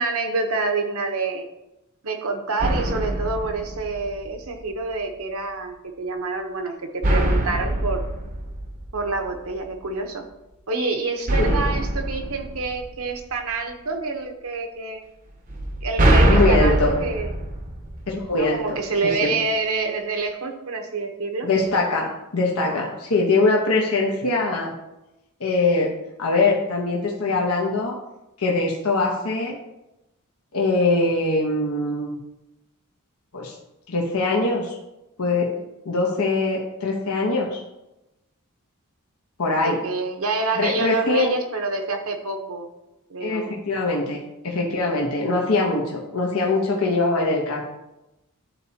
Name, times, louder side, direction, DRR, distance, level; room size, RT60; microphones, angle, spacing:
voice 1, 0.0-1.5 2.0-8.1 8.9-10.3 10.7-15.0 15.8-17.3 18.4-21.5 39.6-42.7 43.1-43.5, right 3 dB, 70° right, 4 dB, 0.9 m, -27 dB
sound 1, 2.6-4.5 7.0-9.4 11.3-13.5 15.5-18.6, right 1 dB, 40° right, 0.8 m, -23 dB
voice 2, 16.2-16.9 18.1-18.8 19.0-19.3 21.4-24.7 25.4-25.9 26.2-28.0 28.4-29.6 30.5-32.2 33.3-33.5 33.9-34.7 35.2-35.5 35.8-37.6 39.4-39.8 40.5-41.3 43.2-44.2 44.4-47.6, left 3 dB, 80° left, -2 dB, 1.1 m, -22 dB
11.5 x 4.2 x 2.9 m, 0.95 s
head